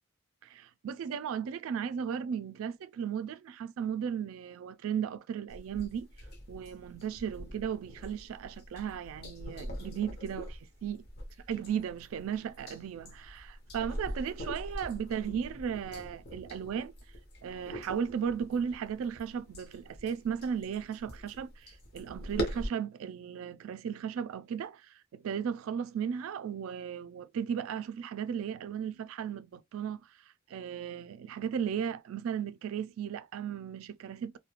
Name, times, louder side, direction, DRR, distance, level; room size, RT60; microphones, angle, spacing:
voice 1, 0.4-6.1 6.5-11.0 11.5-16.9 17.4-30.0 30.5-34.4, right 7 dB, 80° right, 0.3 m, -36 dB
sound 1, 5.5-22.7, equal, 50° left, 0.7 m, -43 dB
2.4 x 2.1 x 2.9 m
head